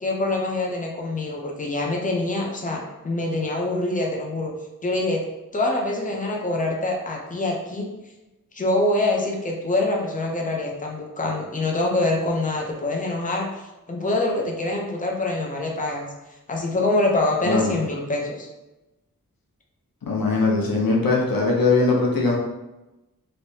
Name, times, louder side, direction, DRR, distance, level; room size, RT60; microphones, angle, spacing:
voice 1, 0.0-4.5 4.8-5.2 5.5-7.9 8.5-13.5 13.9-16.1 16.5-18.5, left 2 dB, 25° left, -1 dB, 0.6 m, -25 dB
voice 2, 17.4-17.7 20.0-22.4, left 3 dB, 85° left, -2 dB, 0.8 m, -20 dB
3.2 x 2.8 x 2.8 m, 0.99 s
wide cardioid pair, 65°, 34 cm